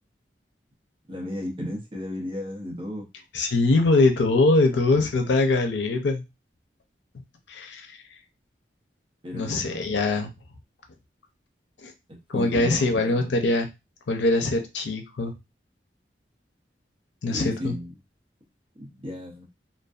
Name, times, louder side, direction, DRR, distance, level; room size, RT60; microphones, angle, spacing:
voice 1, 1.1-3.1 9.2-9.9 12.1-13.0 17.3-18.0 18.8-19.5, left 1 dB, 30° right, 1 dB, 0.7 m, -34 dB
voice 2, 3.3-6.2 7.5-7.9 9.3-10.3 11.8-11.9 12.3-13.7 14.1-15.3 17.2-17.7, left 2 dB, 90° left, 5 dB, 0.5 m, -22 dB
2.5 x 2.2 x 2.3 m, 0.24 s
head